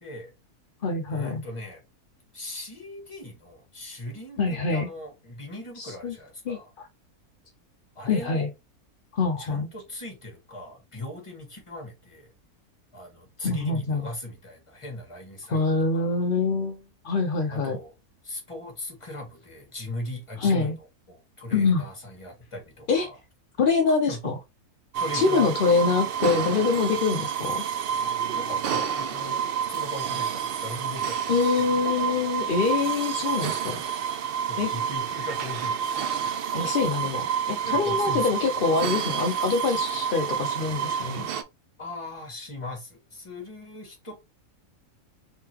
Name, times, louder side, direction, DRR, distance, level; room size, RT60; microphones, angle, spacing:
voice 1, 0.0-0.3 1.1-1.8 2.3-4.4 4.7-6.7 7.9-8.5 9.4-12.3 12.9-16.2 17.5-17.9 18.2-20.7 21.1-23.2 24.1-24.3 25.0-25.5 28.3-32.1 34.5-35.9 36.2-36.9 37.6-38.2 41.8-44.1, left 1 dB, 20° left, 1.4 m, -39 dB
voice 2, 0.8-1.4 4.4-4.9 5.8-6.2 6.5-6.9 8.1-8.5 9.1-9.7 13.4-14.1 15.5-17.8 20.4-20.8 21.5-21.9 22.9-23.1 23.6-24.4 25.1-27.6 31.3-33.8 34.6-34.7 36.5-37.2 37.5-41.3, left 4 dB, 60° left, 0.5 m, -25 dB
sound 1, 24.9-41.4, right 7 dB, 85° right, 0.5 m, -29 dB
3.7 x 3.7 x 2.9 m
omnidirectional pair, 1.7 m